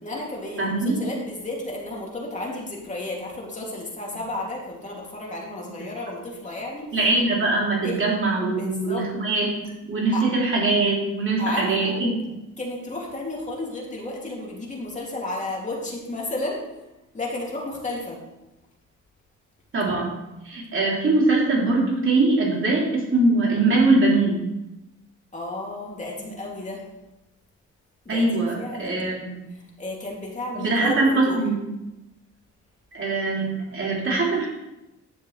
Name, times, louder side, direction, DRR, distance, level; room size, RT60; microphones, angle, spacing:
voice 1, 0.0-7.0 7.8-8.0 8.6-9.1 10.1-10.3 11.4-12.0 12.6-16.6 17.1-18.2 25.3-26.8 28.0-29.1 29.8-31.5, left 2 dB, 25° left, -3 dB, 2.7 m, -32 dB
voice 2, 0.6-0.9 6.9-9.5 9.9-12.1 19.7-20.2 20.4-24.4 28.1-29.4 30.5-31.6 32.9-34.5, right 2 dB, 40° right, -3 dB, 3.3 m, -22 dB
10.0 x 7.1 x 3.4 m, 0.97 s
cardioid pair, 90°, 30 cm